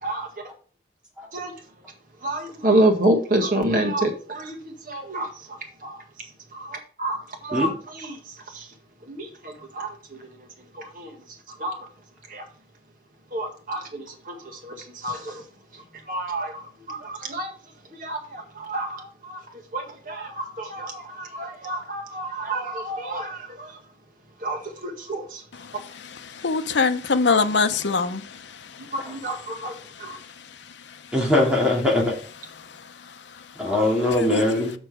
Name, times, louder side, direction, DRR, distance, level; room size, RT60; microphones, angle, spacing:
voice 1, 0.0-0.5 1.3-1.9 2.2-8.7 9.1-10.5 10.7-11.9 12.3-12.5 13.3-15.4 15.7-17.6 17.9-23.8 24.4-25.4 28.9-30.2, right 1 dB, 50° right, 1.8 m, -29 dB
voice 2, 25.5-28.9 29.8-31.1 32.6-33.7 34.1-34.4, left 4 dB, 85° left, 0.7 m, -26 dB
voice 3, 31.1-32.2 33.6-34.7, left 1 dB, 5° right, 2.6 m, -21 dB
6.6 x 6.0 x 4.9 m
head